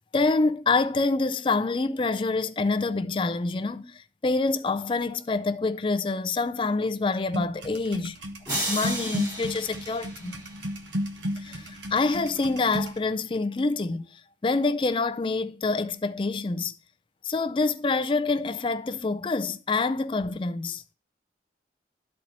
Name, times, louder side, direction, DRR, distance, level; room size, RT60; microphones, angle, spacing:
voice 1, 0.1-8.2 8.7-10.3 11.4-16.7 17.2-20.8, left 3 dB, 30° left, 0.4 m, -26 dB
sound 1, 7.3-13.0, equal, 85° right, 1.3 m, -33 dB
sound 2, 8.5-10.8, right 1 dB, 25° right, 3.5 m, -33 dB
12.0 x 4.3 x 4.2 m
head